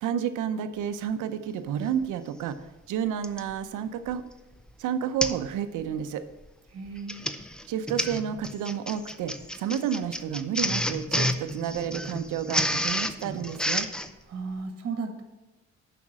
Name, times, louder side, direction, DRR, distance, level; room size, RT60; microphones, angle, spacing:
voice 1, 0.0-2.6 2.9-4.2 4.8-6.2 7.7-13.9, right 8 dB, 85° right, 10 dB, 0.7 m, -30 dB
Printer, 2.0-2.1 3.2-3.5 4.1-4.3 4.6-4.7 5.2-5.5 5.8-6.1 6.9-14.1, equal, 5° left, 0.5 m, -30 dB
voice 2, 6.7-7.3 14.3-15.2, right 4 dB, 50° right, 5 dB, 1.5 m, -35 dB
7.3 x 5.9 x 6.1 m, 1.1 s
cardioid pair, 90°, 30 cm